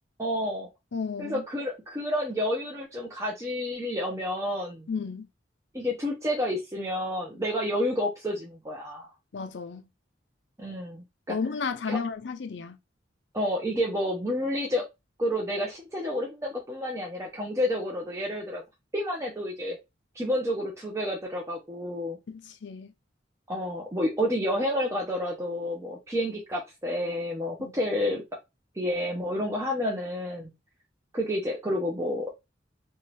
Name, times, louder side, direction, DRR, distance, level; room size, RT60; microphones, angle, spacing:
voice 1, 0.2-0.7 1.2-4.9 5.7-9.1 10.6-11.4 11.9-12.0 13.3-14.8 15.2-18.6 18.9-19.8 20.1-22.2 23.5-28.2 28.8-30.5 31.1-32.3, left 1 dB, 15° right, 0.6 m, -30 dB
voice 2, 0.9-1.4 4.9-5.3 9.3-9.9 11.3-12.8 22.3-22.9 27.6-27.7, left 5 dB, 70° left, 0.5 m, -33 dB
2.7 x 2.4 x 3.1 m
head